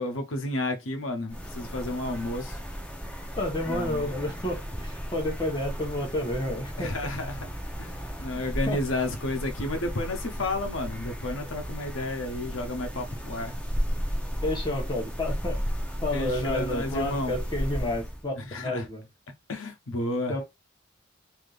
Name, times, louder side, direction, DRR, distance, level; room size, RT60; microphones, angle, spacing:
voice 1, 0.0-2.6 3.6-4.1 6.8-7.5 7.8-13.6 16.1-17.3 18.4-18.9 19.5-20.3, left 1 dB, 85° left, 0.9 m, -31 dB
sound 1, 1.3-18.2, equal, 5° left, 0.7 m, -34 dB
voice 2, 3.4-6.9 8.7-8.8 14.4-15.6 16.0-19.0 20.3-20.4, left 1 dB, 20° left, 1.2 m, -30 dB
3.5 x 2.8 x 2.5 m
head